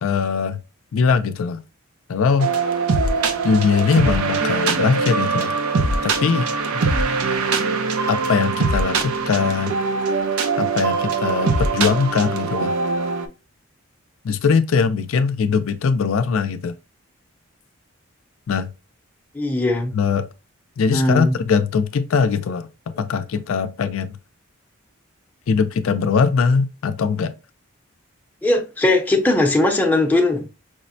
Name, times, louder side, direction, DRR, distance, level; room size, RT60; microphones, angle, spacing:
voice 1, 0.0-0.6 0.9-1.6 2.1-2.5 3.4-5.5 6.0-6.5 8.1-9.7 10.6-12.7 14.2-16.7 18.5-18.7 19.9-20.3 20.8-22.7 23.0-24.2 25.5-27.3, left 5 dB, 70° left, 0.4 m, -20 dB
sound 1, 2.4-13.3, right 4 dB, 90° right, 0.6 m, -22 dB
voice 2, 19.3-19.9 20.9-21.3 28.4-30.5, left 2 dB, 10° left, 0.5 m, -19 dB
4.9 x 2.1 x 2.6 m
head